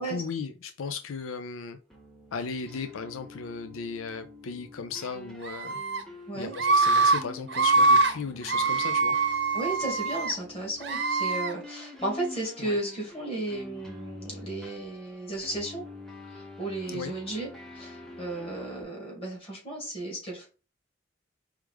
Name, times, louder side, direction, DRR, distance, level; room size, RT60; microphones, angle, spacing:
voice 1, 0.0-1.8 2.3-5.8 6.3-9.1 12.6-12.8 16.9-17.1, left 5 dB, 90° left, 8 dB, 0.5 m, -36 dB
sound 1, 1.9-18.8, left 2 dB, 5° left, 0.8 m, -46 dB
Screaming, 5.4-6.0 6.5-7.2 7.5-8.1 8.5-10.3 10.8-11.5, right 3 dB, 60° right, 0.8 m, -24 dB
voice 2, 9.5-15.9 16.3-20.5, right 1 dB, 30° left, -1 dB, 2.1 m, -34 dB
4.7 x 3.2 x 3.5 m, 0.34 s
head